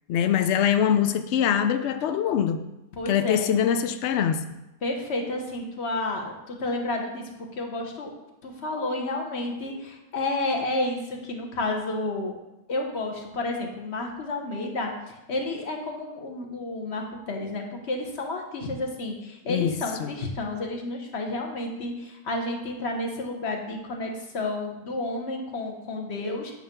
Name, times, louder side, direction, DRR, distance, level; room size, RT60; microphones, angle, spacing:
voice 1, 0.1-2.6 3.1-4.4 19.5-19.7 20.0-20.1, left 9 dB, 85° left, 9 dB, 0.6 m, -23 dB
voice 2, 2.9-3.6 4.8-8.1 8.4-12.3 12.7-26.5, left 2 dB, 45° left, 2 dB, 1.3 m, -31 dB
9.2 x 3.4 x 6.7 m, 0.96 s
omnidirectional pair, 1.8 m